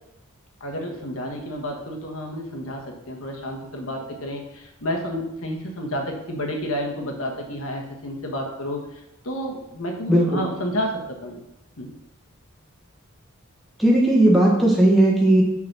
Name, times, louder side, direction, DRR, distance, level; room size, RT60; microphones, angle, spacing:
voice 1, 0.6-8.9 9.2-11.4 11.8-11.9, equal, 85° left, 1 dB, 1.4 m, -30 dB
voice 2, 10.1-10.4 13.8-15.4, right 1 dB, ahead, -4 dB, 1.4 m, -16 dB
6.0 x 4.0 x 6.0 m, 0.86 s
head